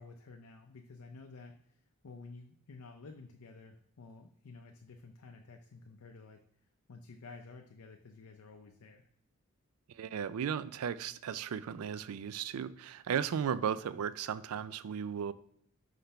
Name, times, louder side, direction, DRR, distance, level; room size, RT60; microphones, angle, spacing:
voice 1, 0.0-6.4 6.9-9.1, left 3 dB, 70° left, 3 dB, 0.6 m, -52 dB
voice 2, 9.9-15.3, right 8 dB, 70° right, 16 dB, 0.4 m, -35 dB
5.8 x 3.3 x 5.5 m, 0.67 s
head